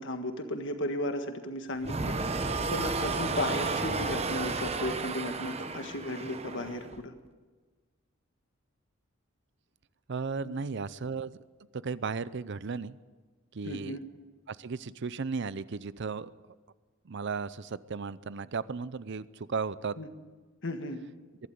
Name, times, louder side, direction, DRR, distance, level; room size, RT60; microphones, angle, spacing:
voice 1, 0.0-7.1 10.4-10.5 13.7-14.0 20.0-20.1 20.6-21.0, left 1 dB, 60° left, 7 dB, 1.6 m, -35 dB
sound 1, 1.8-7.0, right 3 dB, 30° right, 1.0 m, -32 dB
voice 2, 10.1-11.4 11.7-13.0 13.5-14.0 14.5-16.3 17.0-20.0, right 5 dB, 60° right, 17 dB, 0.6 m, -35 dB
23.0 x 12.0 x 9.3 m, 1.4 s
head